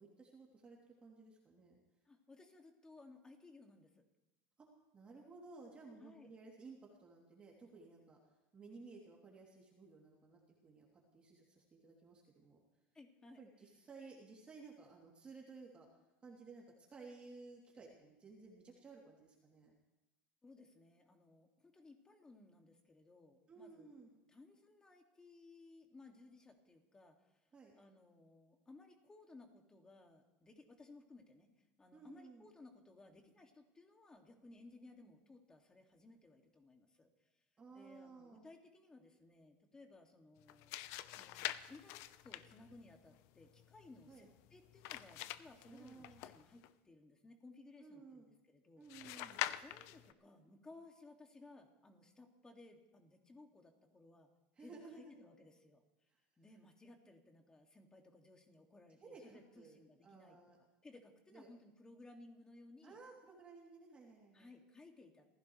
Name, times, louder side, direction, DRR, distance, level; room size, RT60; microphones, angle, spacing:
voice 1, 0.0-1.8 4.6-4.7 4.9-8.2 8.5-12.6 13.4-15.9 16.2-19.7 23.5-24.1 27.5-27.8 31.9-32.5 37.6-38.4 44.1-44.3 45.6-46.2 47.8-48.3 48.8-49.5 54.5-55.1 59.0-60.6 61.3-61.5 62.8-64.5, right 4 dB, 20° right, -2 dB, 2.9 m, -56 dB
voice 2, 2.1-4.0 5.9-6.3 12.9-13.5 20.4-24.0 24.3-27.4 27.7-37.1 37.7-40.8 41.2-41.4 41.7-48.8 49.4-54.3 54.6-55.8 56.4-60.4 60.8-63.0 64.3-65.3, left 2 dB, 15° left, 3 dB, 2.2 m, -60 dB
sound 1, 40.4-46.7 48.9-50.1, left 14 dB, 60° left, 0.7 m, -46 dB
27.5 x 15.5 x 3.2 m, 1.0 s
supercardioid pair, 140°, 5 cm